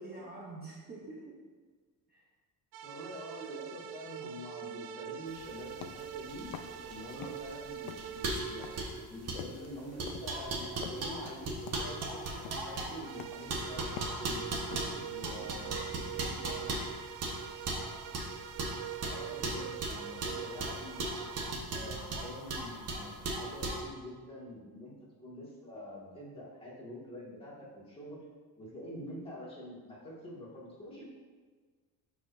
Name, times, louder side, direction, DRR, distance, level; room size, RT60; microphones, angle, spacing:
voice 1, 0.0-1.5 2.1-2.3 7.0-7.3 14.6-15.7 16.1-16.4, right 3 dB, 25° right, -3 dB, 0.7 m, -49 dB
sound 1, 2.7-8.9 13.0-21.5, right 10 dB, 75° right, 0.5 m, -44 dB
voice 2, 2.8-6.5 6.9-14.5 15.0-16.8 19.0-21.1 21.7-24.9 25.2-28.2 28.6-31.0, equal, 15° left, -6 dB, 1.9 m, -46 dB
sound 2, 5.4-23.8, right 2 dB, 40° right, 1.1 m, -38 dB
sound 3, 5.6-7.6 7.8-15.0, left 9 dB, 70° left, 0.6 m, -47 dB
11.5 x 4.8 x 2.6 m, 1.5 s
cardioid pair, 160°, 38 cm